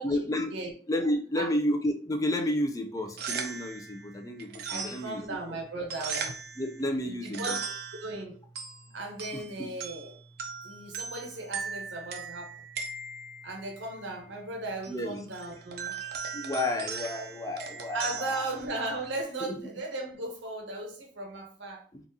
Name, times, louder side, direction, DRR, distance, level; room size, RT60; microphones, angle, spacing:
voice 1, 0.0-0.5 0.9-5.2 6.6-7.6 9.3-9.7 14.9-15.2 16.3-18.5 19.4-19.6 21.9-22.0, left 1 dB, 15° left, 0.4 m, -31 dB
sound 1, 3.0-19.2, right 5 dB, 50° right, 0.4 m, -40 dB
voice 2, 4.7-6.3 7.0-7.7 8.0-8.4 8.8-10.2 10.6-12.6 13.4-15.9 17.9-21.8, right 2 dB, 70° right, 0.8 m, -37 dB
3.9 x 2.4 x 2.7 m
head